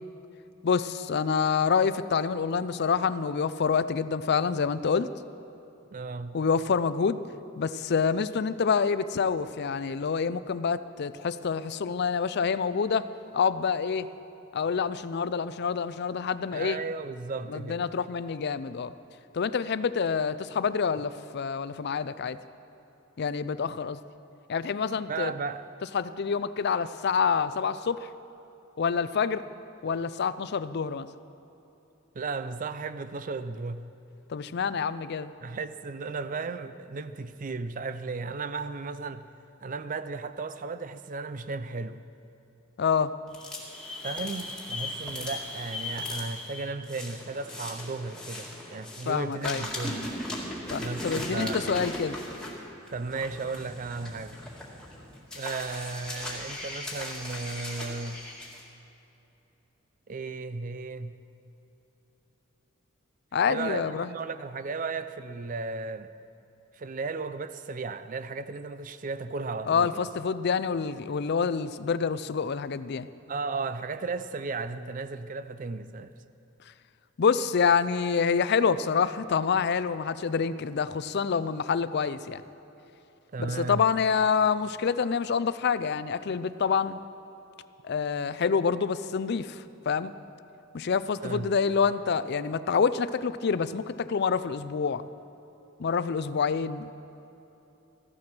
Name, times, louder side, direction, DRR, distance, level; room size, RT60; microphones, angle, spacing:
voice 1, 0.6-5.1 6.3-7.2 7.6-13.1 13.3-14.1 14.5-16.8 17.5-18.9 19.3-22.4 23.2-24.0 24.5-25.3 25.9-28.1 28.8-29.4 29.8-31.1 34.3-35.3 42.8-43.1 49.1-49.6 50.7-52.2 63.3-64.1 69.6-73.1 77.2-82.4 83.4-87.0 87.8-90.1 90.7-95.0 95.8-96.9, left 6 dB, 55° left, 0.4 m, -27 dB
voice 2, 5.9-6.4 16.5-17.8 25.1-25.7 32.1-33.8 35.4-39.3 39.6-42.0 44.0-50.1 50.8-51.9 52.9-54.4 55.3-58.2 60.1-61.2 63.5-66.1 66.7-70.1 73.3-76.1 83.3-83.9 91.2-91.6, right 4 dB, 40° right, 0.5 m, -35 dB
sound 1, 43.3-49.1 49.4-58.6, left 1 dB, 5° left, 1.9 m, -38 dB
14.5 x 11.5 x 6.0 m
head